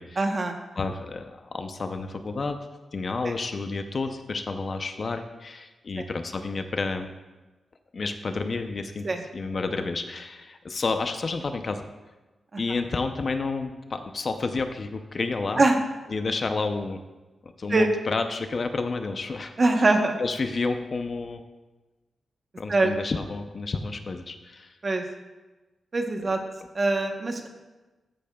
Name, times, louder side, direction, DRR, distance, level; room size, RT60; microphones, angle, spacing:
voice 1, 0.2-0.6 3.2-3.3 6.0-6.1 9.0-9.2 12.5-12.6 15.6-15.8 17.7-17.9 19.6-20.2 22.7-22.9 24.8-25.0 25.9-26.4 26.7-27.5, right 2 dB, 35° right, 4 dB, 1.0 m, -23 dB
voice 2, 0.8-2.6 2.9-7.1 7.9-9.1 9.3-11.8 12.6-15.6 16.1-17.0 17.4-19.5 19.8-19.9 20.2-21.4 22.6-24.7 26.2-26.3, left 3 dB, 40° left, 7 dB, 0.6 m, -30 dB
14.0 x 8.5 x 2.3 m, 1.2 s
wide cardioid pair, 130°, 0 cm